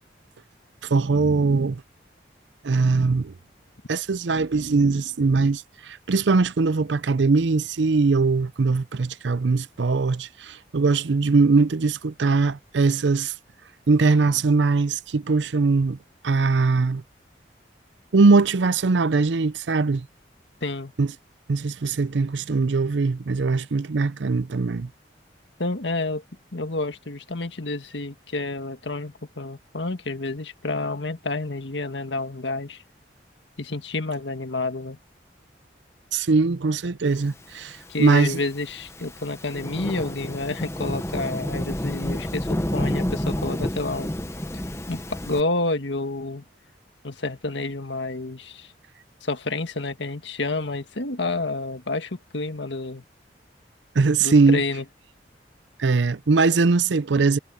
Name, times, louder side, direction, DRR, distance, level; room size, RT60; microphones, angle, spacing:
voice 1, 0.8-1.8 2.6-3.3 3.9-13.3 13.9-16.0 16.2-17.0 18.1-20.1 21.0-21.1 21.5-24.9 36.1-38.4 53.9-54.6 55.8-57.4, right 4 dB, 80° right, 0.6 m, -21 dB
voice 2, 20.6-20.9 25.6-26.2 26.5-32.8 33.6-35.0 37.9-44.1 44.9-46.4 47.0-48.7 49.2-53.0 54.2-54.8, left 2 dB, 80° left, 1.7 m, -29 dB
Thunderstorm / Rain, 37.7-45.4, left 1 dB, 15° left, 1.0 m, -30 dB
head